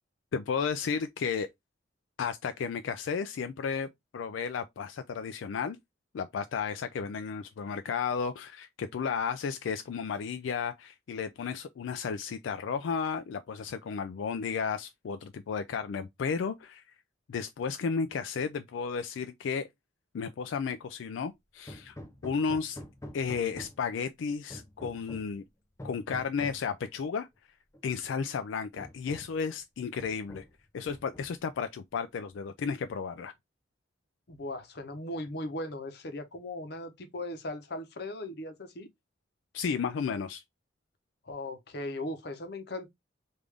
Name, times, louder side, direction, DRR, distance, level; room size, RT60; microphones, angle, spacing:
voice 1, 0.3-1.5 2.2-5.8 6.1-16.8 17.3-19.7 20.1-21.9 22.2-22.8 23.1-25.4 25.8-27.3 27.8-30.4 30.7-33.3 39.5-40.4, left 6 dB, 85° left, 0.3 m, -33 dB
Hammer, 21.7-23.9 24.5-25.4 25.8-26.7 27.7-27.8 28.2-28.4 28.8-29.4 30.0-30.6 30.9-31.5, left 1 dB, 15° left, 0.4 m, -46 dB
voice 2, 34.3-38.9 41.3-42.9, left 1 dB, 60° left, 0.8 m, -38 dB
3.6 x 2.5 x 3.3 m
head